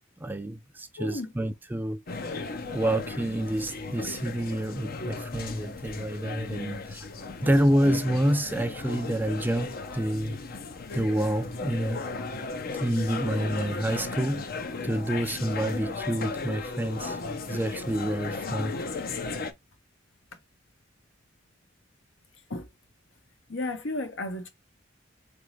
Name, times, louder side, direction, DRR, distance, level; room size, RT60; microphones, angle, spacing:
voice 1, 0.2-2.0 2.7-7.1 7.4-10.4 10.9-12.0 12.7-14.5 14.8-17.2 17.5-18.7, right 1 dB, 10° right, 0.4 m, -28 dB
voice 2, 1.0-1.3 12.9-13.3 22.5-22.7 23.5-24.5, left 2 dB, 75° left, 1.3 m, -34 dB
sound 1, 2.1-19.5, left 3 dB, 50° left, 0.7 m, -36 dB
4.1 x 3.4 x 3.1 m
head